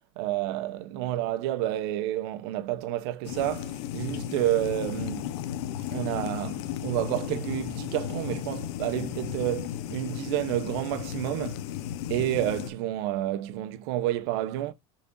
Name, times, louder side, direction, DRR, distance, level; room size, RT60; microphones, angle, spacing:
voice 1, 0.2-5.3 5.9-11.7 12.1-14.7, right 13 dB, 70° right, 0.9 m, -30 dB
sound 1, 3.2-12.7, left 11 dB, 75° left, 1.1 m, -35 dB
6.7 x 5.9 x 2.6 m
supercardioid pair, 140°, 14 cm